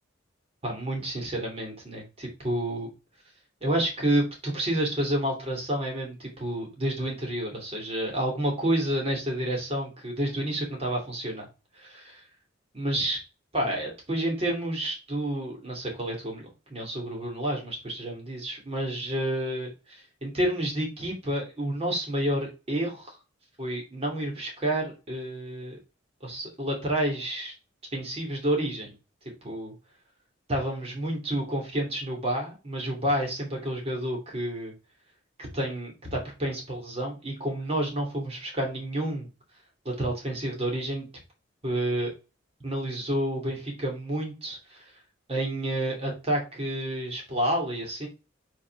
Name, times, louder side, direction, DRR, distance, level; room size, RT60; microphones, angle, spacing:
voice 1, 0.6-2.9 3.6-11.5 11.8-12.2 12.7-13.2 13.5-23.2 23.6-25.8 26.2-27.5 27.9-28.9 29.4-29.7 30.5-34.7 35.4-39.3 39.8-41.1 41.6-42.1 42.6-44.8 45.3-48.1, right 1 dB, 30° right, 0 dB, 2.8 m, -30 dB
4.7 x 4.5 x 5.9 m, 0.30 s
head